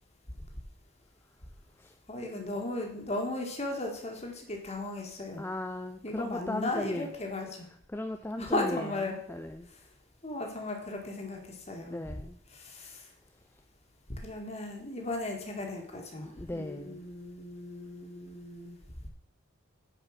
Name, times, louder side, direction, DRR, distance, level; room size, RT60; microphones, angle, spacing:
voice 1, 2.1-5.5 6.0-7.7 8.4-9.2 10.2-12.0 12.5-13.1 14.2-18.8, left 2 dB, 30° left, 2 dB, 1.9 m, -36 dB
voice 2, 5.4-7.1 7.9-9.0 9.3-9.7 11.8-12.4 16.2-17.0, left 1 dB, 10° left, 6 dB, 0.4 m, -37 dB
9.6 x 5.1 x 6.5 m, 0.67 s
head